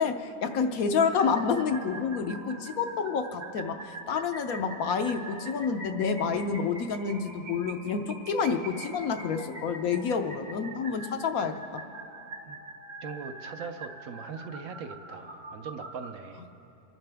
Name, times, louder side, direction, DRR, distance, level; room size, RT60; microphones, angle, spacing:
voice 1, 0.0-11.8, left 5 dB, 70° left, 6 dB, 1.1 m, -29 dB
sound 1, 1.1-16.1, right 2 dB, 35° right, 0.9 m, -44 dB
voice 2, 13.0-16.5, right 5 dB, 65° right, 6 dB, 1.0 m, -40 dB
26.0 x 10.5 x 3.4 m, 2.8 s
omnidirectional pair, 1.7 m